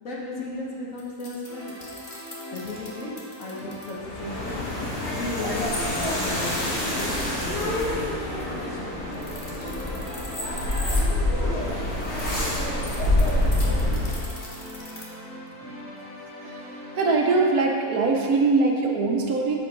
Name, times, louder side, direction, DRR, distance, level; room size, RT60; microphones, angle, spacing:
voice 1, 0.0-1.7 2.5-3.1 3.4-4.7 5.1-9.3, left 2 dB, 55° left, -4 dB, 1.6 m, -35 dB
sound 1, 1.0-3.9 5.7-7.3 9.0-11.0 11.9-15.0, left 2 dB, 35° left, 1.2 m, -39 dB
sound 2, 1.5-17.6, equal, 10° left, 1.5 m, -41 dB
sound 3, 4.0-14.4, left 1 dB, 85° left, 2.5 m, -26 dB
voice 2, 16.9-19.6, right 3 dB, 70° right, 0 dB, 1.3 m, -22 dB
7.7 x 6.1 x 4.5 m, 2.2 s
omnidirectional pair, 1.7 m